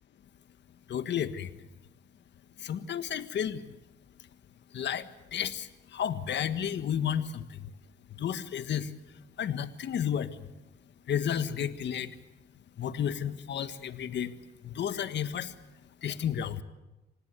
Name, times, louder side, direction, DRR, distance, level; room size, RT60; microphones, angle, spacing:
voice 1, 0.9-1.6 2.6-3.7 4.7-7.7 8.1-10.5 11.1-12.2 12.8-14.3 14.6-15.5 16.0-16.6, left 9 dB, 65° left, 11 dB, 1.5 m, -32 dB
26.5 x 18.0 x 8.3 m, 1.0 s
cardioid pair, 90°, 20 cm